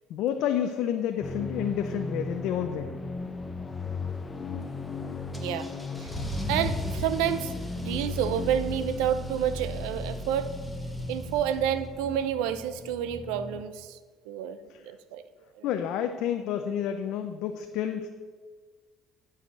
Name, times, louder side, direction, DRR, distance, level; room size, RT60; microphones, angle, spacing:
voice 1, 0.1-2.9 14.7-14.8 15.6-18.1, left 9 dB, 75° left, 6 dB, 0.6 m, -29 dB
sound 1, 1.2-13.6, left 3 dB, 25° left, 0.8 m, -36 dB
Car / Engine starting / Accelerating revving vroom, 5.3-11.8, right 1 dB, 5° left, 1.4 m, -37 dB
voice 2, 5.3-5.7 6.5-10.5 11.1-14.0 14.3-14.6 14.8-15.2 15.6-15.7, right 10 dB, 90° right, 12 dB, 0.6 m, -29 dB
12.0 x 4.9 x 6.8 m, 1.5 s
supercardioid pair, 95°, 0 cm